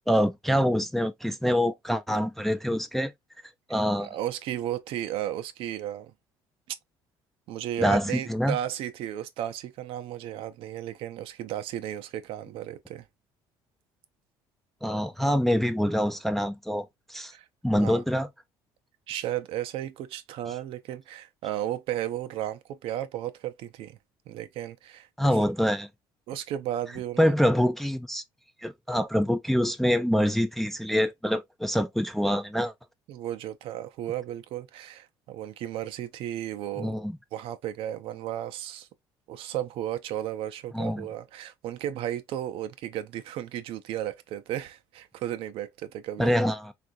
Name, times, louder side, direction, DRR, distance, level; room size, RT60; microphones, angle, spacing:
voice 1, 0.1-3.1 3.7-4.1 7.8-8.6 14.8-17.3 17.6-18.3 25.2-25.9 27.2-28.2 28.6-32.7 36.8-37.2 40.7-41.1 46.2-46.7, equal, 5° left, 0.3 m, -25 dB
voice 2, 4.0-6.1 6.7-6.8 7.5-13.1 17.3-17.5 17.7-18.0 19.1-24.0 24.3-25.1 26.3-27.3 33.1-36.9 37.3-38.9 39.3-46.3, right 12 dB, 65° right, 0.5 m, -34 dB
3.5 x 2.4 x 2.5 m
cardioid pair, 125°, 10 cm